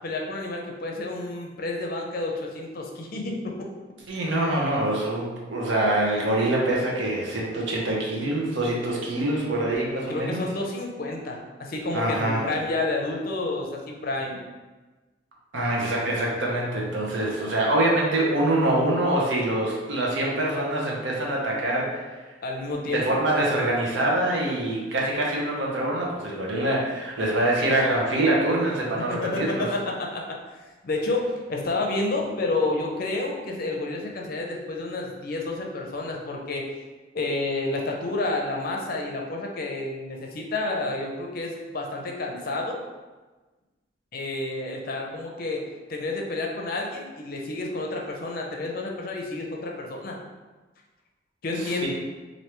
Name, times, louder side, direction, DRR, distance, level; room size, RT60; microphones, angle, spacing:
voice 1, 0.0-3.7 10.1-14.4 22.4-23.2 29.1-30.4 30.8-36.6 37.1-42.8 44.1-45.6 45.9-50.2 51.4-51.9, left 2 dB, 50° left, 0 dB, 0.5 m, -30 dB
voice 2, 4.1-10.5 11.9-12.4 15.5-22.1 22.9-29.6 51.6-51.9, right 1 dB, 80° right, -3 dB, 0.8 m, -25 dB
3.3 x 2.6 x 3.0 m, 1.2 s
head